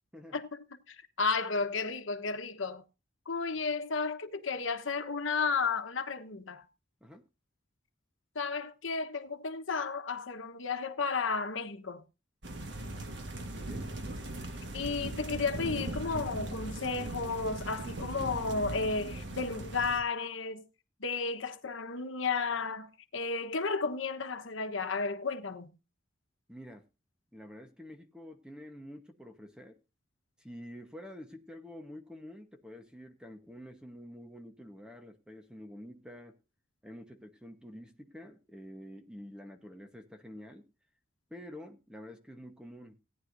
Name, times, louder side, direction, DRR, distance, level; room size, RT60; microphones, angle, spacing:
voice 1, 0.9-2.8 3.3-6.7 8.3-12.0 14.7-20.6 21.0-25.7, left 4 dB, 85° left, 1.1 m, -33 dB
sound 1, 12.4-20.0, right 1 dB, 60° right, 1.5 m, -39 dB
voice 2, 13.5-13.9 26.5-26.9 27.3-29.7 30.4-36.4 36.8-40.7 41.3-43.0, equal, 5° right, 1.0 m, -48 dB
17.5 x 9.7 x 2.6 m
head